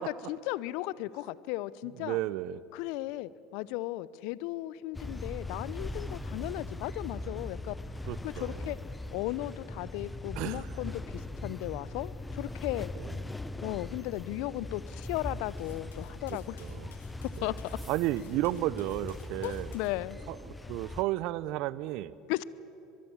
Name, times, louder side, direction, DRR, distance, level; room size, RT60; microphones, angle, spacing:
voice 1, 0.0-2.2 2.7-7.7 8.2-8.8 9.1-11.0 11.4-12.9 13.6-16.6 17.4-17.5 19.4-20.2 22.3-22.4, left 17 dB, 65° left, 19 dB, 0.7 m, -36 dB
voice 2, 2.0-2.6 8.1-8.7 10.4-10.7 13.0-13.2 16.3-16.9 17.4-17.5 17.9-19.7 20.3-20.4 20.7-22.1, right 15 dB, 60° right, 19 dB, 0.7 m, -33 dB
sound 1, 4.9-21.0, left 2 dB, 10° left, 1.1 m, -40 dB
Cutlery silverware, 15.6-19.9, left 8 dB, 80° left, 2.4 m, -58 dB
23.5 x 22.0 x 7.3 m, 2.8 s
hypercardioid pair, 75°, 0 cm